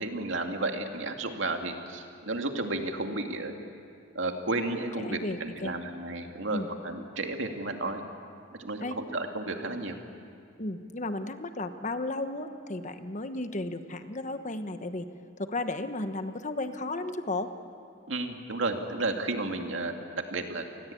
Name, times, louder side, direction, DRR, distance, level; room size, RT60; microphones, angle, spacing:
voice 1, 0.0-3.5 4.1-8.0 8.6-10.0 18.1-20.0 20.3-20.6, right 2 dB, 80° right, 4 dB, 2.3 m, -32 dB
voice 2, 5.0-5.7 6.5-6.7 8.8-9.0 10.6-15.1 15.4-17.5, left 2 dB, 40° left, 9 dB, 1.2 m, -34 dB
28.0 x 20.5 x 8.6 m, 2.4 s
head